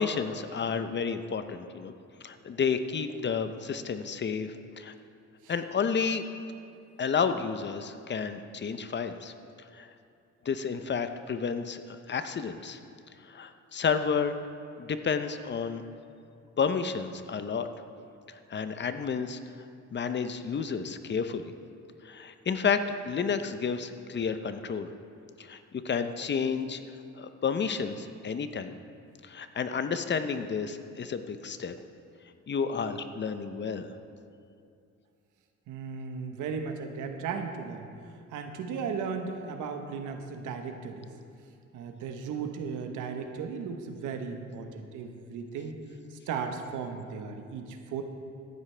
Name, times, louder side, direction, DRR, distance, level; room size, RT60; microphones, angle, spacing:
voice 1, 0.0-1.9 2.2-4.9 5.5-6.2 7.0-9.3 9.7-9.9 10.4-11.8 12.1-12.8 13.2-14.3 14.8-15.8 16.6-17.7 18.3-19.4 19.9-21.5 22.0-24.9 25.4-26.8 27.2-28.7 29.2-31.8 32.5-34.0, left 6 dB, 35° left, 10 dB, 0.6 m, -31 dB
voice 2, 35.7-41.1 41.7-45.7 46.3-48.0, right 5 dB, 85° right, 6 dB, 1.1 m, -36 dB
14.5 x 11.0 x 3.3 m, 2.4 s
cardioid pair, 90°, 30 cm